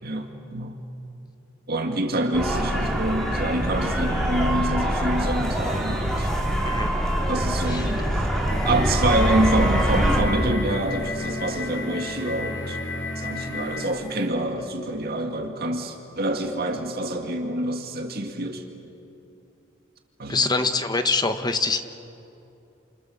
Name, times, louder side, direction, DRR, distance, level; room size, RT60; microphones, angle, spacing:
voice 1, 0.0-0.8 1.7-6.3 7.3-8.3 8.6-18.7 20.2-20.5, right 1 dB, 50° right, 3 dB, 2.2 m, -27 dB
sound 1, 2.3-10.2, equal, ahead, 3.4 m, -24 dB
sound 2, 8.5-14.0, left 2 dB, 85° left, 4.3 m, -32 dB
voice 2, 20.3-21.8, left 3 dB, 20° left, 8 dB, 1.2 m, -24 dB
29.5 x 27.0 x 7.2 m, 2.8 s
head